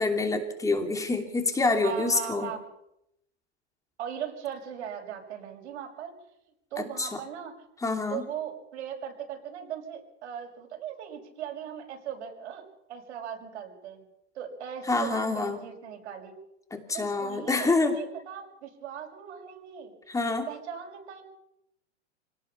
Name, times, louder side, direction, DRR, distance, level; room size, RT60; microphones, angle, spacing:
voice 1, 0.0-2.5 6.8-7.2 7.8-8.2 14.9-15.6 16.7-18.0 20.1-20.5, left 3 dB, 10° left, 5 dB, 2.8 m, -27 dB
voice 2, 1.8-2.6 4.0-6.1 6.7-7.7 8.1-12.6 12.9-14.0 14.3-16.3 16.9-19.9 20.5-21.2, right 8 dB, 75° right, 1 dB, 6.2 m, -38 dB
25.5 x 18.5 x 5.8 m, 0.83 s
hypercardioid pair, 135°, 35 cm